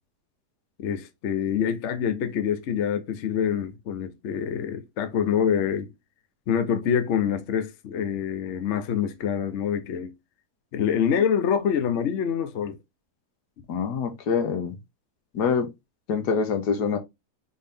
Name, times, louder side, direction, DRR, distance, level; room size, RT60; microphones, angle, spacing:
voice 1, 0.8-5.9 6.5-10.1 10.7-12.8, left 8 dB, 55° left, 0.9 m, -26 dB
voice 2, 13.7-14.8 15.3-15.7 16.1-17.0, left 6 dB, 80° left, 1.5 m, -25 dB
4.1 x 3.7 x 3.4 m
omnidirectional pair, 1.7 m